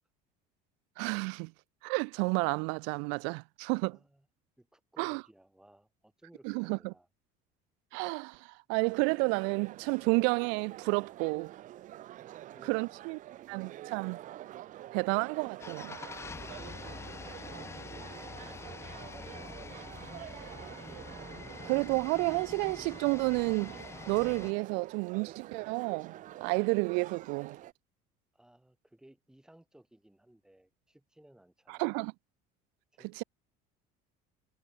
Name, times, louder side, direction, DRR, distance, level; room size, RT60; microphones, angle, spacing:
voice 1, 1.0-1.5 1.8-4.0 5.0-5.2 6.4-6.9 7.9-11.5 12.7-13.2 13.5-14.2 14.9-16.0 21.6-23.8 24.1-27.6 31.7-32.1 33.2-33.3, right 37 dB, 80° right, 0.5 m, -31 dB
voice 2, 3.9-4.3 4.6-7.1 12.2-13.5 17.7-18.9 19.1-20.3 28.3-31.9 32.9-33.1, right 1 dB, 5° right, 4.0 m, -60 dB
sound 1, 8.9-27.7, right 14 dB, 40° right, 1.0 m, -47 dB
sound 2, 15.6-24.5, left 5 dB, 15° left, 0.6 m, -45 dB
cardioid pair, 155°, 19 cm